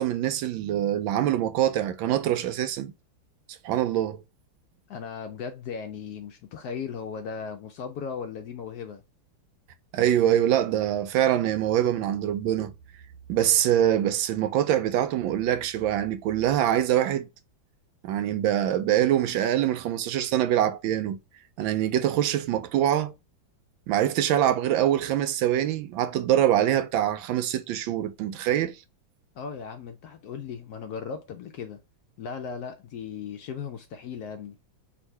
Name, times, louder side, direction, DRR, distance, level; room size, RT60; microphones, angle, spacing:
voice 1, 0.0-2.9 3.6-4.2 9.9-12.7 13.3-17.3 18.0-21.2 21.6-23.1 23.9-28.7, right 11 dB, 90° right, 1.4 m, -24 dB
voice 2, 4.9-9.0 29.3-31.8 32.2-34.6, left 6 dB, 75° left, 0.9 m, -37 dB
3.6 x 2.6 x 4.4 m
omnidirectional pair, 2.1 m